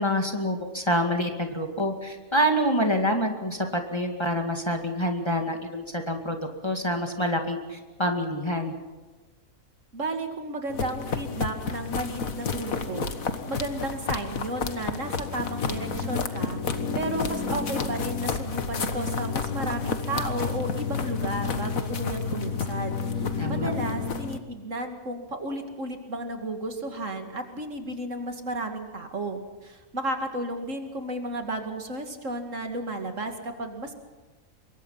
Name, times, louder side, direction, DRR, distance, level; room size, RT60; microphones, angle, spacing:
voice 1, 0.0-6.4 6.6-8.8 23.4-23.7, equal, 20° left, 3 dB, 2.3 m, -27 dB
voice 2, 9.9-13.1 13.5-33.9, right 1 dB, 60° right, 5 dB, 2.6 m, -33 dB
sound 1, 10.7-24.4, left 5 dB, 70° left, 1.9 m, -30 dB
25.5 x 23.0 x 5.7 m, 1.3 s
omnidirectional pair, 1.5 m